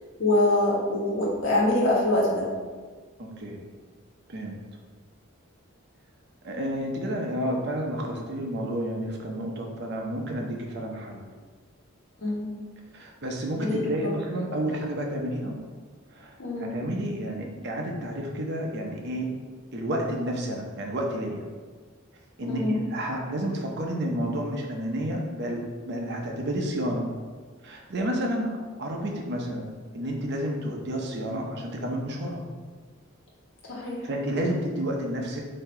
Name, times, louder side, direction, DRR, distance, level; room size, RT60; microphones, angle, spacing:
voice 1, 0.2-2.5 12.2-12.5 13.6-14.1 16.4-16.7 22.5-22.8 33.6-34.1, left 1 dB, 75° left, -4 dB, 1.3 m, -24 dB
voice 2, 3.2-3.6 4.3-4.6 6.4-11.3 12.9-15.6 16.1-19.3 19.7-21.4 22.4-27.1 27.6-29.7 29.9-32.4 33.8-35.5, right 1 dB, 55° right, 0 dB, 0.7 m, -30 dB
4.2 x 2.8 x 4.3 m, 1.5 s
head